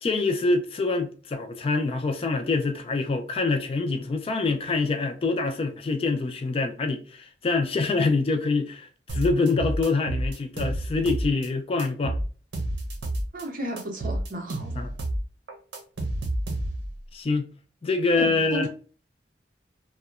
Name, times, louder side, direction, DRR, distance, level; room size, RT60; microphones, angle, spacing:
voice 1, 0.0-12.2 14.8-14.9 17.1-17.5 17.8-18.7, left 3 dB, 30° left, 0.3 m, -25 dB
sound 1, 9.1-11.5 11.8-13.4 13.8-17.0, right 1 dB, 85° right, 0.7 m, -29 dB
voice 2, 13.3-14.8 18.2-18.7, right 1 dB, 50° right, 0.7 m, -33 dB
2.8 x 2.1 x 2.3 m
head